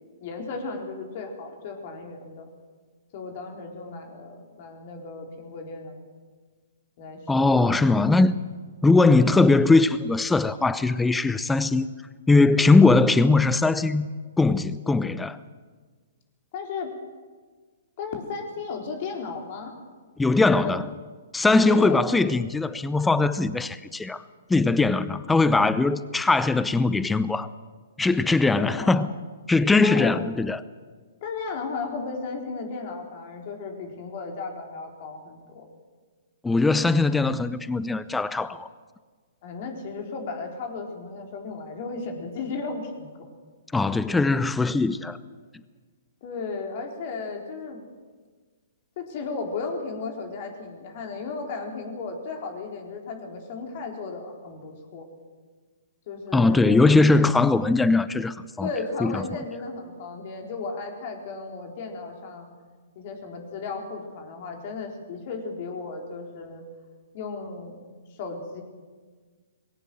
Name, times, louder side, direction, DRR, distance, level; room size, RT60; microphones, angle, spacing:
voice 1, 0.2-2.5 3.1-6.0 7.0-7.7 16.5-16.9 18.0-19.7 20.4-20.8 21.4-22.0 28.6-29.2 29.8-30.2 31.2-35.6 39.4-43.3 46.2-47.8 49.0-55.1 56.1-56.9 58.6-62.5 63.0-66.6 67.1-67.8 68.2-68.6, left 4 dB, 45° left, 4.1 m, -35 dB
voice 2, 7.3-8.4 8.8-11.9 12.3-14.1 14.4-15.4 20.2-20.8 21.3-24.2 24.5-27.5 28.0-29.1 29.5-30.6 36.4-38.7 43.7-45.2 56.3-58.7 59.0-59.2, left 3 dB, 5° left, 0.7 m, -20 dB
20.0 x 17.5 x 7.8 m
figure-of-eight pair, 120°, 0 cm